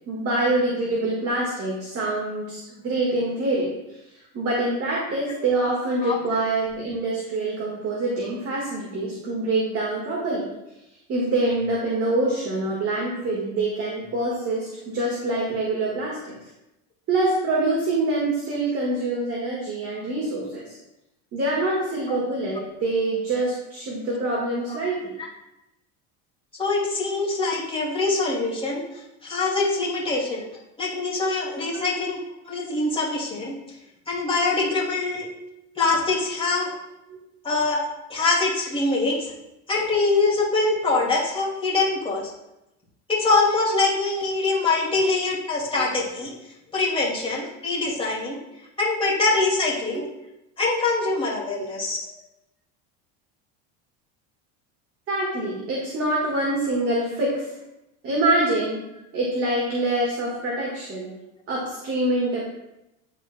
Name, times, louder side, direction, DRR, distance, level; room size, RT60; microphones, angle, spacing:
voice 1, 0.1-10.5 11.1-16.3 17.1-20.8 21.3-25.2 31.7-31.9 37.1-37.2 41.9-42.0 44.8-45.1 45.8-45.9 49.9-50.0 55.1-57.4 58.0-58.8 59.1-61.1 61.5-62.4, right 2 dB, 40° right, -4 dB, 1.7 m, -25 dB
voice 2, 26.6-28.8 29.2-30.4 30.8-32.2 32.4-33.6 34.1-35.3 35.8-36.7 37.4-37.8 38.1-39.3 39.7-42.2 43.1-46.3 46.7-48.4 48.8-50.0 50.6-52.1, left 3 dB, 15° left, -6 dB, 2.2 m, -23 dB
10.5 x 4.1 x 2.2 m, 0.92 s
supercardioid pair, 125°, 37 cm